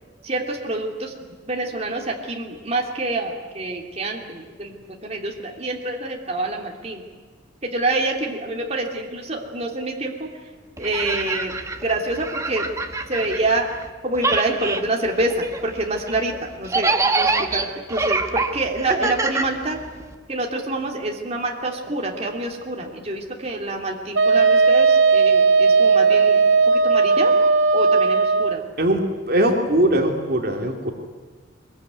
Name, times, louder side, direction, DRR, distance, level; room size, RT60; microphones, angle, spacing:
voice 1, 0.2-1.1 1.5-7.0 7.6-10.3 10.8-11.5 11.8-12.7 13.1-13.7 14.0-19.8 20.3-26.4 26.7-27.3 27.7-28.6, right 2 dB, 35° right, 0 dB, 3.0 m, -26 dB
sound 1, 10.8-13.9 14.1-20.1, right 3 dB, 15° right, 1.4 m, -25 dB
Wind instrument woodwind instrument, 24.1-28.6, right 4 dB, 80° right, 1.0 m, -16 dB
voice 2, 29.3-30.9, right 1 dB, 50° right, 2 dB, 2.7 m, -20 dB
22.5 x 22.0 x 9.4 m, 1.5 s
head